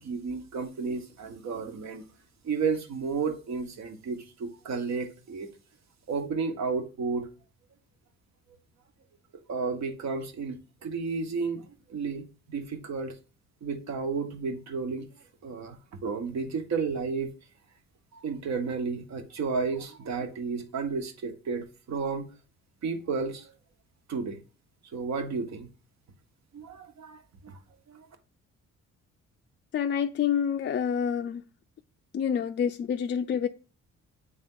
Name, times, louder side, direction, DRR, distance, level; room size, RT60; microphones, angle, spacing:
voice 1, 0.0-2.0 2.4-5.5 6.1-7.3 9.5-13.2 13.6-15.1 15.4-17.3 18.1-22.3 22.8-23.5 24.1-24.4 24.9-25.7 26.5-27.6 27.9-28.0, right 5 dB, 65° right, 1.2 m, -32 dB
voice 2, 29.7-31.4 32.1-33.5, left 8 dB, 40° left, 0.4 m, -27 dB
8.0 x 3.5 x 3.8 m
cardioid pair, 90°, 30 cm